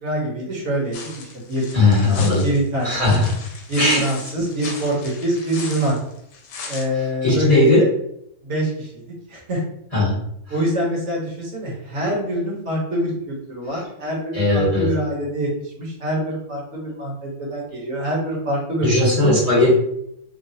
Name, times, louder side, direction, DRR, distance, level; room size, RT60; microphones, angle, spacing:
voice 1, 0.0-1.6 2.1-3.2 3.7-6.0 6.7-7.9 8.4-9.6 10.5-19.3, right 1 dB, 60° right, -4 dB, 1.1 m, -25 dB
sound 1, 0.9-6.8, left 4 dB, 80° left, 1.0 m, -36 dB
voice 2, 1.7-2.4 2.8-3.3 3.8-4.0 7.2-7.8 9.9-10.2 14.3-14.9 18.8-19.7, left 2 dB, 30° left, -9 dB, 0.9 m, -17 dB
3.0 x 2.2 x 2.6 m, 0.75 s
omnidirectional pair, 1.5 m